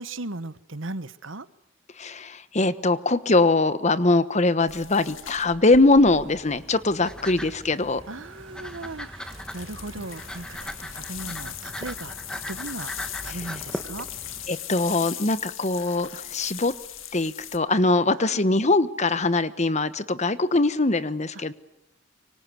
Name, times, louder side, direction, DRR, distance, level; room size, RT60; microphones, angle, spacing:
voice 1, 0.0-1.5 8.1-12.2 12.5-12.9 13.2-14.1 18.2-18.4, right 2 dB, 75° right, 14 dB, 1.3 m, -37 dB
voice 2, 2.0-8.0 13.3-13.4 14.5-16.7 17.1-21.5, left 2 dB, 35° left, 14 dB, 1.2 m, -22 dB
sound 1, 4.7-7.0 9.2-17.6, left 11 dB, 90° left, 1.9 m, -39 dB
sound 2, 6.0-14.5, equal, 5° left, 1.8 m, -39 dB
Car passing by / Engine, 6.4-13.1, right 3 dB, 30° right, 6.0 m, -54 dB
25.0 x 25.0 x 9.6 m, 0.78 s
head